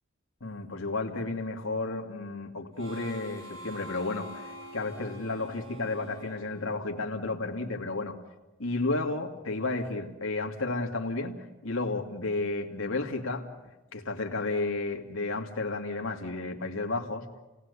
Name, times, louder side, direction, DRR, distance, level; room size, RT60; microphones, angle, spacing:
voice 1, 0.4-8.2 8.6-11.4 11.6-13.5 13.9-17.2, left 3 dB, 85° left, 2 dB, 2.4 m, -32 dB
Harmonica, 2.8-7.2, equal, 70° right, 7.7 m, -46 dB
29.0 x 19.0 x 8.3 m, 1.1 s
head